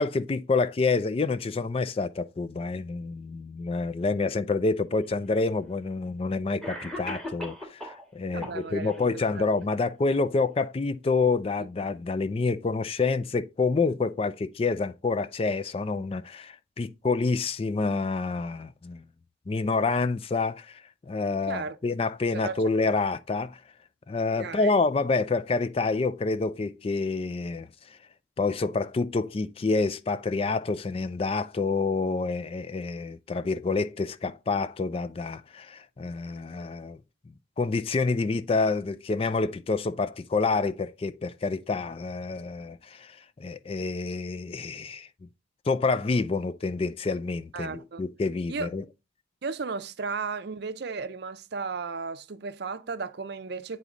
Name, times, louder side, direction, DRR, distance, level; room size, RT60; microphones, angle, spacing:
voice 1, 0.0-19.0 19.5-23.6 24.1-27.7 28.4-37.0 37.6-45.1 45.7-48.8, left 3 dB, 30° left, 0.3 m, -28 dB
Cough, 4.9-5.0 6.0-6.1 6.6-8.0 8.4-9.0, equal, ahead, 1.4 m, -38 dB
voice 2, 8.3-9.5 21.5-21.8 22.3-22.6 24.4-24.7 47.5-48.0 48.5-48.7 49.4-53.8, right 4 dB, 55° right, 0.5 m, -35 dB
8.4 x 4.1 x 3.7 m
head